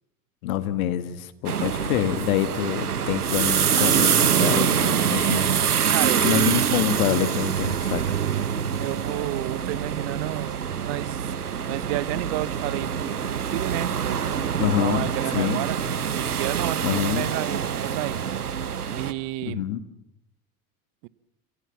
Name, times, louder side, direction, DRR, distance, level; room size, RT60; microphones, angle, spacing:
voice 1, 0.4-5.5 6.2-8.0 14.6-15.6 16.8-17.3 19.5-19.8, left 11 dB, 65° left, 1.8 m, -26 dB
sound 1, 1.5-19.1, right 8 dB, 90° right, 1.1 m, -25 dB
voice 2, 5.8-6.5 8.8-11.3 11.7-15.8 16.1-18.2 18.9-19.6 21.0-21.1, right 20 dB, 55° right, 1.0 m, -31 dB
28.5 x 16.0 x 7.3 m
hypercardioid pair, 75°, 44 cm